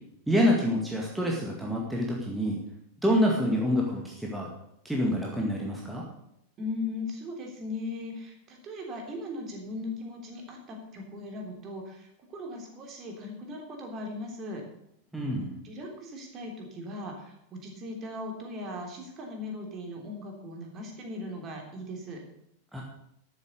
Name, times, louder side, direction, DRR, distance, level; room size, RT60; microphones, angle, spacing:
voice 1, 0.3-2.6 3.0-4.5 4.8-6.0 15.1-15.5 22.7-22.8, equal, 5° right, -2 dB, 2.1 m, -27 dB
voice 2, 6.6-14.6 15.6-22.2 22.7-22.8, left 2 dB, 30° right, 2 dB, 3.2 m, -38 dB
13.0 x 7.5 x 6.6 m, 0.78 s
figure-of-eight pair, 90°, 0 cm